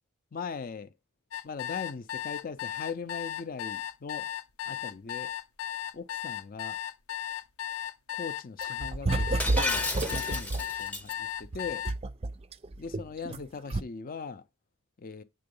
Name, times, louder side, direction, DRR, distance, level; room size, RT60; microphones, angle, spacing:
voice 1, 0.3-0.9 1.4-4.3 4.7-5.3 5.9-6.8 8.1-11.1 11.4-11.8 12.8-14.4 15.0-15.2, left 5 dB, 40° left, 0.5 m, -39 dB
sound 1, 1.3-11.9, left 11 dB, 75° left, 0.7 m, -36 dB
sound 2, 8.6-10.7 11.4-13.4 13.7-13.8, right 2 dB, 30° right, 0.4 m, -30 dB
Shatter, 9.4-11.1, left 2 dB, 5° left, 0.8 m, -32 dB
8.6 x 3.8 x 5.3 m
head